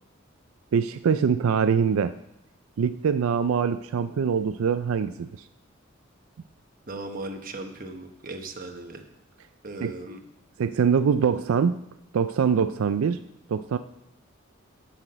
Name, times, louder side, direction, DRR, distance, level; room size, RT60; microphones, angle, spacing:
voice 1, 0.7-2.1 2.8-5.3 9.8-9.9 10.6-11.8 12.1-13.2 13.5-13.8, right 6 dB, 90° right, 11 dB, 0.4 m, -23 dB
voice 2, 6.9-9.0 9.6-10.2, right 2 dB, 40° right, 5 dB, 1.1 m, -37 dB
11.0 x 5.9 x 6.7 m, 0.82 s
head